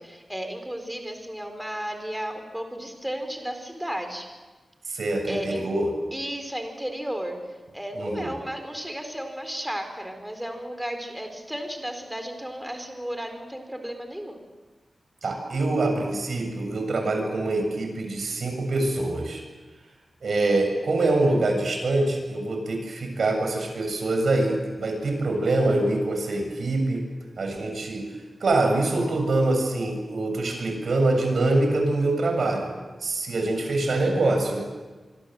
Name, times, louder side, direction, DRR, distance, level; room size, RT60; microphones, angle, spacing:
voice 1, 0.0-4.3 4.9-5.0 5.3-5.6 6.1-7.4 7.7-14.4, equal, 5° right, 6 dB, 4.2 m, -34 dB
voice 2, 4.9-5.9 8.0-8.3 15.2-19.4 20.2-27.0 27.4-28.0 28.4-32.8 33.0-34.6, right 2 dB, 70° right, 4 dB, 7.2 m, -24 dB
26.5 x 24.5 x 7.9 m, 1.3 s
wide cardioid pair, 120°, 0 cm